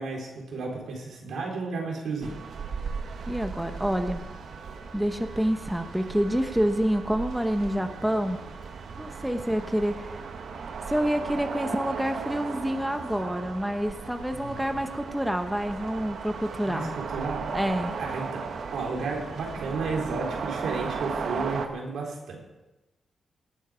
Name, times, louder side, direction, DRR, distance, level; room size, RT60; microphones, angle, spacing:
voice 1, 0.0-2.4 14.3-14.8 16.6-17.5 18.0-22.4, right 4 dB, 85° right, -1 dB, 3.9 m, -33 dB
sound 1, 2.2-21.7, right 5 dB, 65° right, 1.3 m, -36 dB
voice 2, 3.3-4.2 4.9-8.4 9.0-10.3 10.9-16.9 17.5-17.9, equal, 5° right, 7 dB, 0.9 m, -27 dB
18.5 x 9.2 x 5.0 m, 1.1 s
wide cardioid pair, 135°, 0 cm